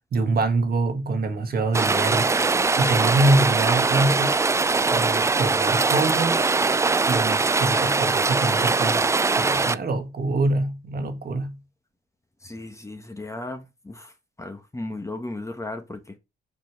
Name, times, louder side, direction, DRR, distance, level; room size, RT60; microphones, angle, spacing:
voice 1, 0.1-2.3 2.7-4.3 4.9-6.5 7.1-11.6, right 2 dB, 50° right, 1.5 m, -25 dB
Rain, 1.7-9.7, right 4 dB, 15° right, 0.3 m, -21 dB
voice 2, 12.4-16.2, left 2 dB, 15° left, 1.5 m, -36 dB
6.1 x 4.7 x 4.7 m
cardioid pair, 90°, 20 cm